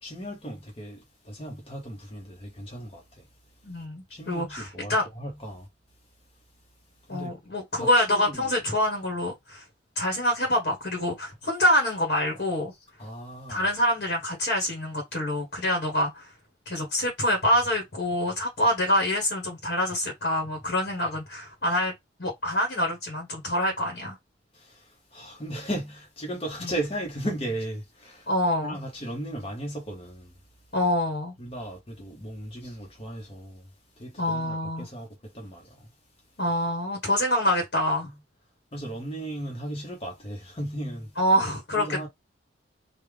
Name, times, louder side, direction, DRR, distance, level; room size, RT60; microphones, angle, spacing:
voice 1, 0.0-3.2 4.1-5.7 7.1-7.3 7.8-8.5 13.0-13.6 24.5-28.3 28.6-30.3 31.4-33.6 34.0-35.9 38.7-41.1 41.8-42.1, right 1 dB, 30° left, 1.0 m, -36 dB
voice 2, 3.6-5.1 7.1-9.6 9.9-12.7 13.5-16.3 16.6-21.9 22.2-24.2 26.6-26.7 28.3-28.8 30.7-31.3 34.2-34.9 36.4-38.1 41.1-42.1, left 1 dB, 60° left, 1.3 m, -26 dB
3.5 x 2.4 x 3.4 m
head